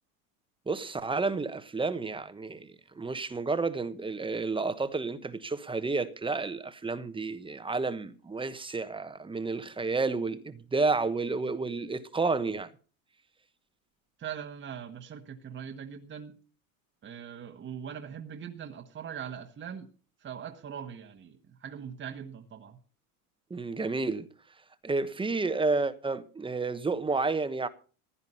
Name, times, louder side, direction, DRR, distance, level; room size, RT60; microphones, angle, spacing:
voice 1, 0.7-12.7 23.5-24.3 24.8-27.7, right 3 dB, 10° right, 1.1 m, -31 dB
voice 2, 14.2-16.3 17.0-19.9 20.2-22.8, right 8 dB, 25° right, 1.4 m, -41 dB
15.5 x 9.7 x 5.6 m
supercardioid pair, 105°, 43 cm